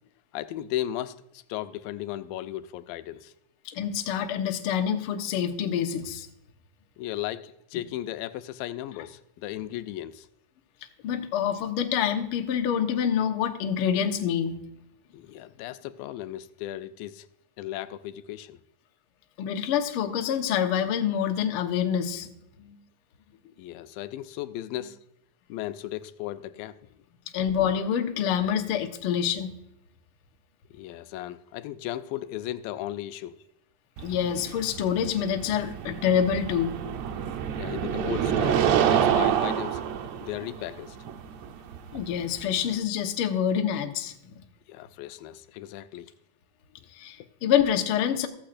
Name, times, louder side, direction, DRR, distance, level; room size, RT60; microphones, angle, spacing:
voice 1, 0.3-3.3 7.0-10.3 15.1-17.3 17.6-18.6 23.6-25.0 25.5-26.9 30.7-33.4 37.6-39.9 40.2-41.0 44.7-46.1, left 13 dB, 85° left, 2.3 m, -36 dB
voice 2, 3.6-6.3 11.0-14.6 19.4-22.3 22.6-22.8 27.3-29.5 34.0-36.8 41.9-44.1 46.9-48.3, left 8 dB, 65° left, 1.4 m, -26 dB
sound 1, 34.0-42.8, right 9 dB, 75° right, 1.7 m, -28 dB
14.5 x 14.5 x 2.5 m
omnidirectional pair, 4.0 m